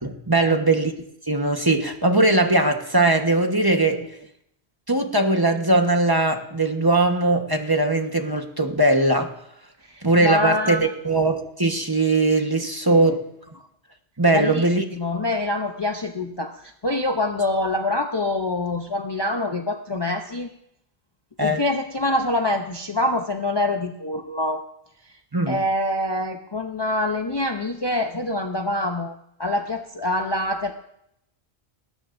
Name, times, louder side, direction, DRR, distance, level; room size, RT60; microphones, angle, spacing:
voice 1, 0.0-0.9 1.3-4.0 4.9-9.3 10.0-13.3 14.2-14.8 21.4-21.6 25.3-25.6, right 2 dB, 20° right, 4 dB, 1.2 m, -20 dB
voice 2, 9.9-10.9 12.9-13.2 14.3-14.7 14.9-20.5 21.4-24.6 25.5-29.1 29.4-30.7, left 1 dB, 25° left, 4 dB, 0.7 m, -25 dB
19.5 x 18.5 x 2.6 m, 0.77 s
omnidirectional pair, 1.1 m